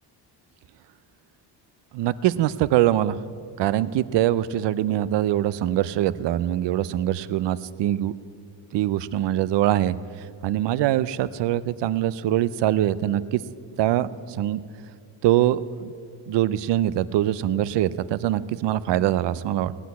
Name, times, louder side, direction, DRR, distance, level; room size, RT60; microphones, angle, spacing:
voice 1, 1.9-3.2 3.6-8.1 8.7-9.9 10.4-13.4 13.8-14.6 15.2-15.9 16.3-19.7, right 13 dB, 75° right, 17 dB, 0.6 m, -23 dB
18.0 x 6.1 x 9.5 m, 2.3 s
cardioid pair, 135°, 43 cm